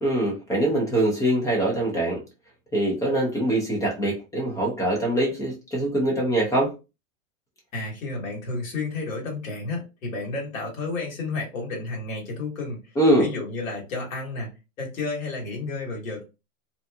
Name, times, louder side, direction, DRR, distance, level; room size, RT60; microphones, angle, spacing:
voice 1, 0.0-2.2 2.7-6.7 13.0-13.3, right 1 dB, 10° left, 0.5 m, -23 dB
voice 2, 7.7-12.8 13.2-14.5 14.8-16.2, left 3 dB, 75° left, 1.5 m, -31 dB
2.8 x 2.4 x 2.2 m
supercardioid pair, 145°, 41 cm